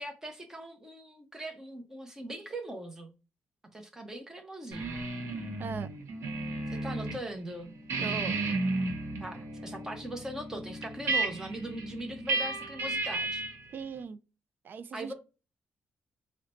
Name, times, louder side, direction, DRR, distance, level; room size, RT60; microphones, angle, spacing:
voice 1, 0.0-3.1 3.7-5.1 6.7-7.7 9.2-13.4 14.9-15.1, right 1 dB, 10° right, 0.9 m, -40 dB
sound 1, 4.7-7.2 7.5-13.7, right 2 dB, 80° right, 0.9 m, -33 dB
voice 2, 8.0-8.4 13.7-14.2 14.6-15.1, right 6 dB, 50° right, 0.4 m, -39 dB
3.8 x 2.1 x 4.3 m
cardioid pair, 135°, 4 cm